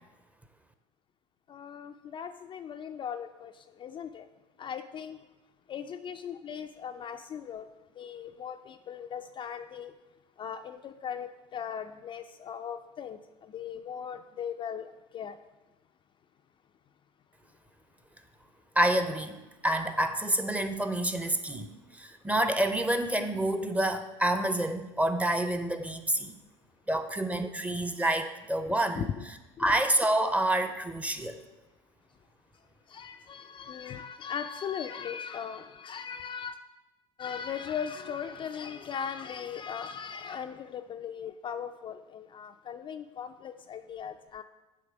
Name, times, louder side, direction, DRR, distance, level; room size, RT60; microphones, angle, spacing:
voice 1, 1.5-4.3 4.6-5.3 5.7-7.7 7.9-9.9 10.4-15.4 28.7-29.2 29.6-29.7 32.1-32.2 32.5-36.6 37.2-44.4, left 8 dB, 30° left, 0.3 m, -39 dB
voice 2, 18.8-26.4 26.9-29.1 29.6-31.4, right 1 dB, 10° right, 0.6 m, -28 dB
8.5 x 3.2 x 4.9 m
hypercardioid pair, 75°, 16 cm